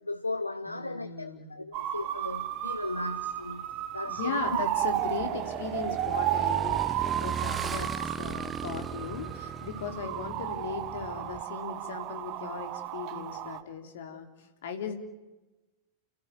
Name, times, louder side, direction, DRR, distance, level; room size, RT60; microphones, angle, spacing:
voice 1, 0.0-4.5, left 2 dB, 85° left, 12 dB, 0.9 m, -36 dB
voice 2, 0.7-1.5 4.1-14.9, left 6 dB, 60° left, 6 dB, 3.4 m, -38 dB
sound 1, 1.7-13.6, right 13 dB, 40° right, 1.5 m, -33 dB
Motorcycle / Engine, 4.4-11.4, right 6 dB, 20° right, 1.0 m, -38 dB
29.0 x 16.5 x 9.6 m, 1.1 s
figure-of-eight pair, 90°, 0 cm